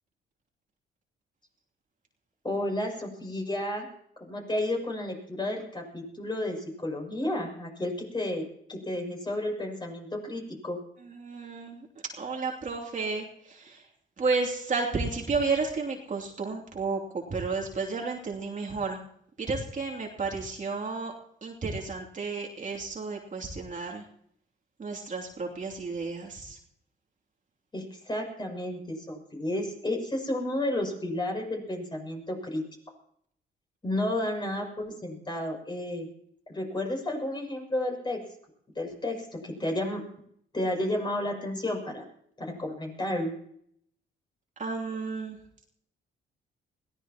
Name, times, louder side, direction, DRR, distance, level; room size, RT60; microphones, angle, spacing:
voice 1, 2.4-3.9 4.2-10.8 27.7-32.6 33.8-36.1 36.5-38.2 38.8-40.0 40.5-42.1 42.4-43.3, left 1 dB, 20° left, 0 dB, 6.9 m, -32 dB
voice 2, 11.0-11.9 12.2-13.9 14.2-19.0 19.4-21.1 21.4-24.0 24.8-26.6 44.6-45.4, right 4 dB, 40° right, 0 dB, 2.9 m, -32 dB
22.0 x 16.5 x 3.0 m, 0.68 s
cardioid pair, 90°, 20 cm